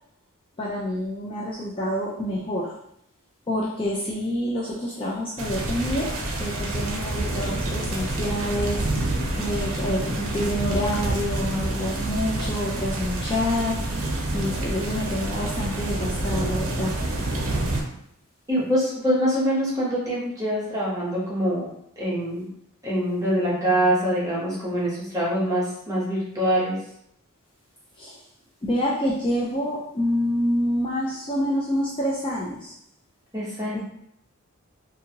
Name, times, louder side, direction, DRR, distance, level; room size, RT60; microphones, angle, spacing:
voice 1, 0.6-2.8 3.5-17.4 28.0-28.2 28.6-32.7 33.7-33.8, left 1 dB, 25° left, -5 dB, 0.3 m, -27 dB
sound 1, 5.4-17.8, right 2 dB, 65° right, 0.6 m, -28 dB
voice 2, 18.5-21.7 22.0-22.4 22.8-26.8 33.3-33.8, equal, 15° right, -7 dB, 0.9 m, -24 dB
2.7 x 2.6 x 2.8 m, 0.73 s
head